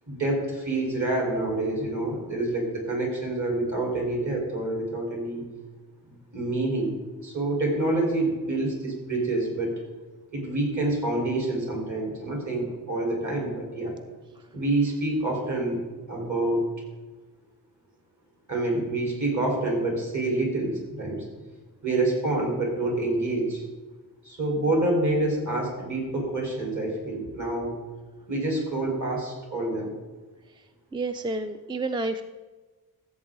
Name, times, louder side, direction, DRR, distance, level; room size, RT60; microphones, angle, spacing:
voice 1, 0.1-5.4 6.1-6.9 7.2-9.8 10.3-14.0 14.5-15.8 16.1-16.6 18.5-21.3 21.8-23.6 24.2-27.7 28.3-29.9, right 2 dB, 50° right, -2 dB, 3.9 m, -27 dB
voice 2, 30.9-32.2, right 2 dB, 15° right, 8 dB, 0.3 m, -29 dB
14.5 x 7.9 x 3.7 m, 1.2 s
wide cardioid pair, 130°, 39 cm